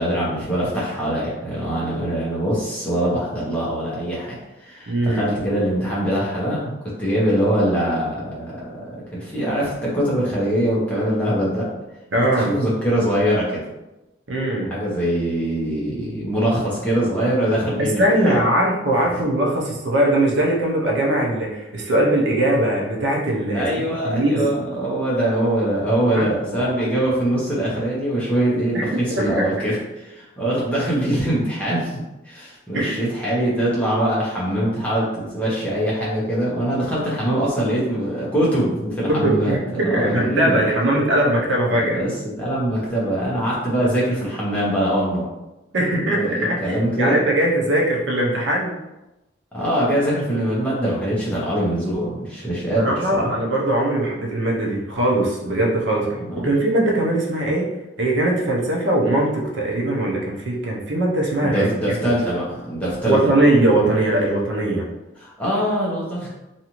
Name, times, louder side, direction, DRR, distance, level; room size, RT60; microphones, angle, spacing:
voice 1, 0.0-8.7 9.1-11.7 12.3-13.6 14.7-18.4 23.5-32.0 32.2-40.6 41.7-45.3 46.1-47.2 49.5-53.3 56.2-56.5 61.4-63.4 63.8-63.9 65.2-66.3, right 1 dB, 5° left, -7 dB, 0.7 m, -23 dB
voice 2, 4.9-5.3 12.1-12.6 14.3-14.7 17.8-24.5 26.2-26.6 28.7-29.5 32.7-33.0 39.1-42.0 45.7-48.7 52.8-56.1 56.4-57.7 58.0-62.0 63.1-64.9, right 1 dB, 65° right, -2 dB, 0.6 m, -20 dB
2.6 x 2.4 x 2.9 m, 1.0 s
head